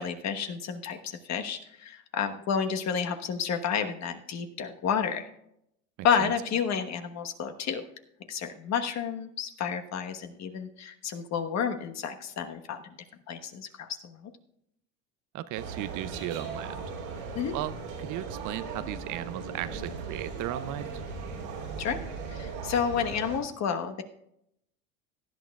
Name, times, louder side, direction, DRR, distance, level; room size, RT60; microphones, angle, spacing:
voice 1, 0.0-5.3 6.0-7.8 8.3-12.9 13.3-14.3 17.3-17.5 21.8-22.0 22.3-24.0, left 7 dB, 45° left, 6 dB, 1.3 m, -30 dB
voice 2, 15.3-16.8 17.5-17.7 18.0-21.0, right 13 dB, 55° right, 14 dB, 0.6 m, -36 dB
sound 1, 15.5-23.4, right 5 dB, 80° right, 3.6 m, -38 dB
18.0 x 11.0 x 2.4 m, 0.77 s
hypercardioid pair, 90°, 38 cm